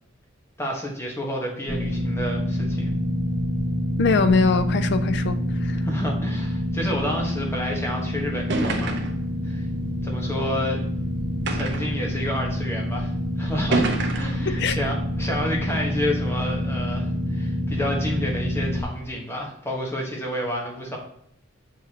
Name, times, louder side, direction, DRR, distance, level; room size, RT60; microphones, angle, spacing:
voice 1, 0.6-2.9 5.8-9.0 9.4-9.7 10.0-10.8 11.5-13.9 14.1-21.0, equal, 15° left, 1.2 m, -30 dB
sound 1, 1.7-18.8, equal, 10° right, 1.1 m, -27 dB
voice 2, 4.0-5.8 14.5-14.8, left 4 dB, 60° left, 0.4 m, -22 dB
sound 2, 7.9-8.0 8.5-9.3 10.2-10.3 11.5-12.0 12.9-13.0 13.7-14.5, right 2 dB, 65° right, 0.7 m, -26 dB
6.8 x 4.8 x 2.9 m
head